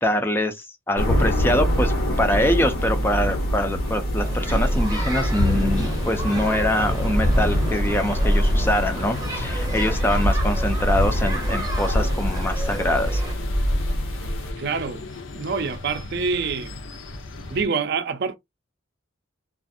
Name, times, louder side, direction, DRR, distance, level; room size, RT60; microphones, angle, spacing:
voice 1, 0.0-13.2, left 1 dB, 10° left, 0.3 m, -24 dB
sound 1, 1.0-14.5, equal, 85° left, 1.1 m, -24 dB
sound 2, 4.2-13.3, right 1 dB, 20° right, 0.7 m, -33 dB
sound 3, 5.1-17.6, left 3 dB, 70° left, 0.5 m, -38 dB
voice 2, 14.6-15.0 15.3-16.7 17.5-18.4, right 5 dB, 55° right, 0.4 m, -26 dB
2.4 x 2.4 x 2.5 m
head